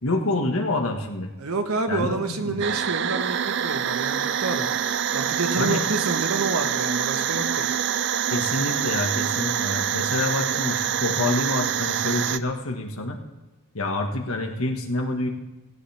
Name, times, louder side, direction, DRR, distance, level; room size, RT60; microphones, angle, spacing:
voice 1, 0.0-1.3 1.9-2.6 5.6-5.8 8.3-13.2 13.7-15.3, left 2 dB, 75° left, 3 dB, 1.7 m, -27 dB
voice 2, 1.4-4.7 5.1-7.7, right 3 dB, 85° right, 6 dB, 1.4 m, -28 dB
sound 1, 2.6-12.4, right 9 dB, 55° right, 0.4 m, -26 dB
16.5 x 16.0 x 3.5 m, 1.1 s
head